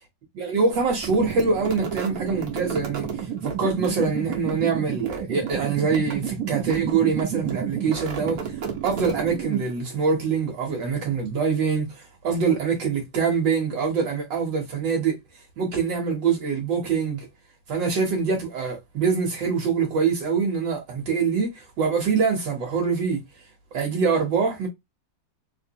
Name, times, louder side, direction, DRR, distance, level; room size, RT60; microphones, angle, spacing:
voice 1, 0.3-15.2 15.6-17.3 17.7-23.2 23.7-24.7, right 5 dB, 70° right, 1.7 m, -24 dB
sound 1, 0.9-9.9, right 8 dB, 55° right, 1.4 m, -31 dB
3.8 x 2.9 x 2.7 m
omnidirectional pair, 2.1 m